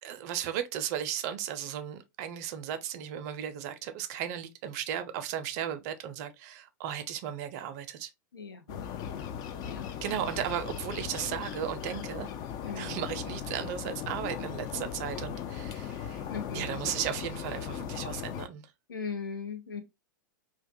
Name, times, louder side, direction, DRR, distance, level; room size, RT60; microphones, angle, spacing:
voice 1, 0.0-8.1 10.0-12.3 12.8-16.2 16.5-18.7, right 10 dB, 50° right, 0.5 m, -35 dB
voice 2, 8.3-8.9 9.1-9.3 9.6-9.9 12.6-13.0 16.3-16.7 18.9-19.8, left 5 dB, 90° left, 0.7 m, -39 dB
sound 1, 8.7-18.5, left 8 dB, 35° left, 0.4 m, -38 dB
2.4 x 2.2 x 2.5 m
hypercardioid pair, 100°, 11 cm